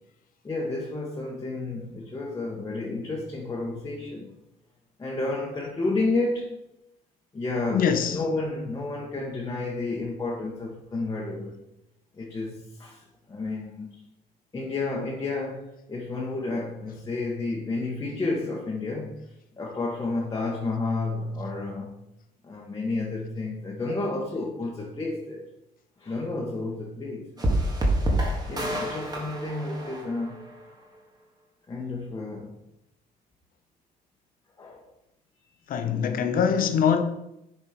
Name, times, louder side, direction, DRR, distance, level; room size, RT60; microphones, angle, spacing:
voice 1, 0.4-4.3 5.0-6.5 7.3-11.5 12.1-14.0 14.5-19.2 19.6-22.0 22.4-25.4 26.0-27.7 28.5-30.4 31.7-32.6 34.6-34.8, left 3 dB, 20° left, 1.3 m, -31 dB
voice 2, 7.7-8.2 35.7-37.0, left 7 dB, 55° left, 0.9 m, -23 dB
sound 1, 27.4-30.6, right 1 dB, 25° right, 1.6 m, -27 dB
7.5 x 4.4 x 5.1 m
cardioid pair, 110°, 17 cm